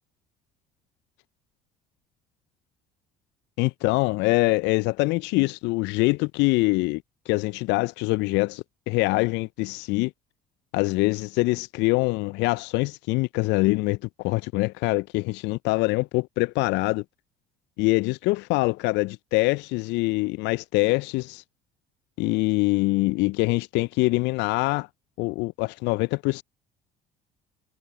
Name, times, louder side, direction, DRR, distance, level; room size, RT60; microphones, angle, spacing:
voice 1, 3.6-10.1 10.7-17.0 17.8-21.4 22.2-24.9 25.2-26.4, left 23 dB, 60° left, 0.7 m, -24 dB
figure-of-eight pair, 55°, 21 cm